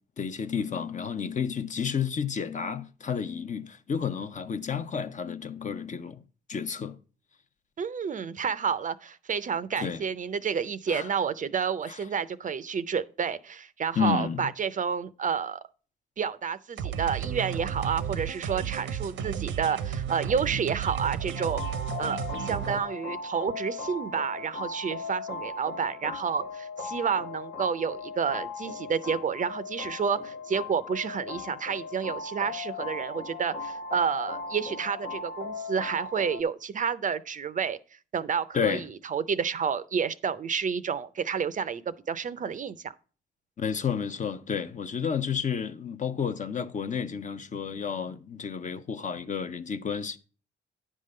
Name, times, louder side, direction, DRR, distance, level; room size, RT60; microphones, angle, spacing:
voice 1, 0.2-6.2 6.5-7.0 9.8-10.0 10.9-11.1 11.9-12.0 14.0-14.5 38.5-38.8 43.6-50.2, left 7 dB, 40° left, 0.7 m, -31 dB
voice 2, 7.8-15.6 16.2-21.6 22.0-37.8 38.1-42.9, right 6 dB, 40° right, 0.5 m, -30 dB
sound 1, 16.8-22.8, right 8 dB, 80° right, 0.8 m, -33 dB
sound 2, 21.3-36.4, left 4 dB, 65° left, 1.2 m, -38 dB
9.7 x 3.7 x 6.5 m
cardioid pair, 90°, 20 cm